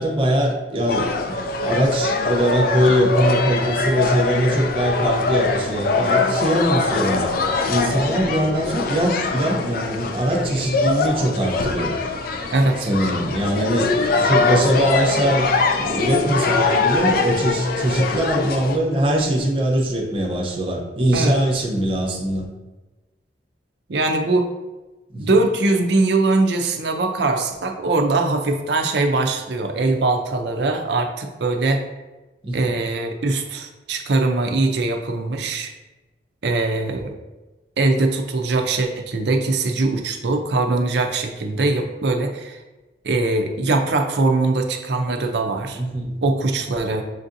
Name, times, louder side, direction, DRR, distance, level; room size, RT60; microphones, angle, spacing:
voice 1, 0.0-7.3 7.6-12.0 12.8-15.5 15.8-22.5 25.1-25.4 32.4-32.7 45.7-46.1, right 1 dB, 30° right, -1 dB, 0.7 m, -22 dB
sound 1, 0.9-18.8, left 4 dB, 50° left, 0.4 m, -22 dB
voice 2, 12.5-12.9 21.1-21.4 23.9-24.5 25.2-31.8 32.5-35.7 36.4-37.1 37.8-42.6 43.0-45.8 46.2-47.0, right 2 dB, 65° right, 4 dB, 0.5 m, -21 dB
6.4 x 2.7 x 2.6 m, 1.1 s
head